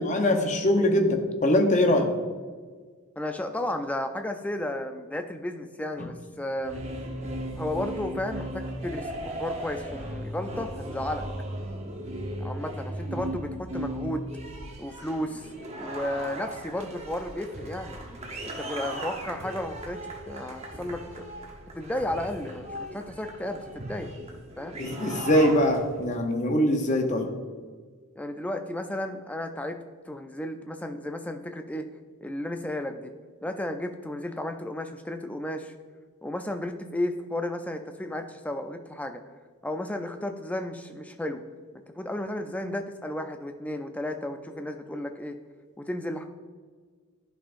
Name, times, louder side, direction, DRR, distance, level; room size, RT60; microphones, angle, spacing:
voice 1, 0.0-2.1 24.8-27.3, left 1 dB, 35° left, 4 dB, 0.7 m, -23 dB
voice 2, 3.2-6.9 7.6-11.3 12.4-14.3 14.8-15.5 15.8-18.0 18.4-21.3 21.7-24.1 24.6-24.8 28.2-29.8 30.0-31.9 32.2-33.1 33.4-35.7 36.2-39.2 39.6-41.4 42.0-45.4 45.8-46.2, left 1 dB, 5° left, 6 dB, 0.3 m, -33 dB
sound 1, 6.6-26.1, right 1 dB, 30° right, 0.9 m, -37 dB
11.0 x 5.6 x 2.5 m, 1.5 s
head